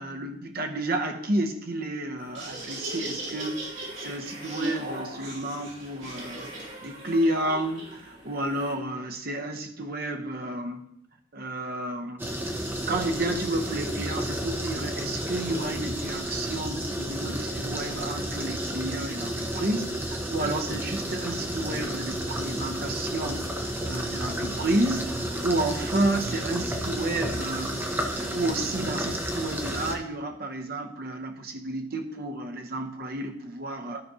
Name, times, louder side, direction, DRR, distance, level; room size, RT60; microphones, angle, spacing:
voice 1, 0.0-6.5 6.8-10.8 11.3-12.2 12.9-23.5 23.8-34.0, right 1 dB, 50° right, 4 dB, 0.9 m, -31 dB
Laughter, 2.2-8.7, right 1 dB, 65° right, 3.2 m, -38 dB
sound 1, 12.2-30.0, right 1 dB, 10° right, 0.7 m, -31 dB
12.0 x 4.2 x 4.8 m, 0.74 s
head